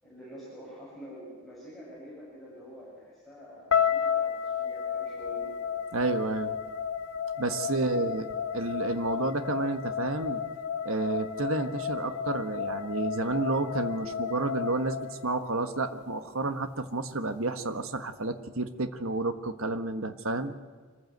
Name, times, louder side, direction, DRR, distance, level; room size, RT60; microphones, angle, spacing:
voice 1, 0.0-5.6 7.7-8.0, equal, ahead, -7 dB, 7.2 m, -46 dB
sound 1, 3.7-15.8, left 7 dB, 85° left, 2.0 m, -32 dB
voice 2, 5.9-6.6 7.4-8.3 8.5-10.4 10.8-20.5, right 2 dB, 70° right, 9 dB, 1.3 m, -30 dB
25.5 x 14.5 x 8.0 m, 1.5 s
head